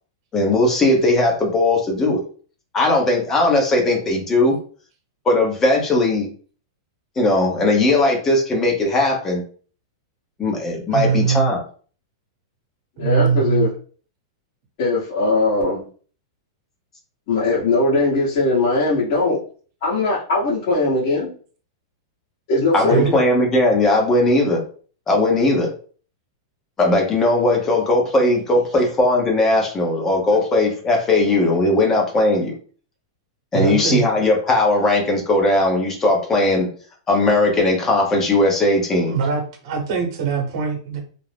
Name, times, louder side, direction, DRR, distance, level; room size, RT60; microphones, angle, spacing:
voice 1, 0.3-2.2 2.7-4.6 5.3-6.3 7.2-9.4 10.4-11.6 22.7-24.6 25.1-25.7 26.8-32.6 33.5-36.7 37.1-39.2, left 2 dB, 15° left, 0 dB, 0.8 m, -18 dB
voice 2, 10.9-11.5 13.0-13.7 22.9-23.1 33.5-34.0 39.1-41.0, right 6 dB, 50° right, 1 dB, 1.0 m, -21 dB
voice 3, 13.0-13.7 14.8-15.8 17.3-19.4 19.8-21.3 22.5-23.0, left 2 dB, 45° left, -9 dB, 1.0 m, -20 dB
2.5 x 2.0 x 3.3 m, 0.42 s
supercardioid pair, 155°, 2 cm